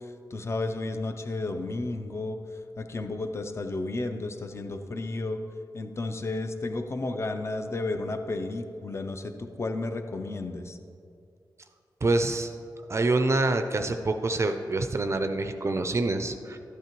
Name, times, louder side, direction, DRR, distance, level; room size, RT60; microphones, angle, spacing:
voice 1, 0.3-2.4 2.8-5.4 5.7-10.8, left 2 dB, 35° left, 7 dB, 0.6 m, -32 dB
voice 2, 12.0-12.5 12.9-16.6, right 2 dB, 35° right, 7 dB, 0.4 m, -26 dB
12.0 x 8.3 x 3.0 m, 2.5 s
wide cardioid pair, 115°, 8 cm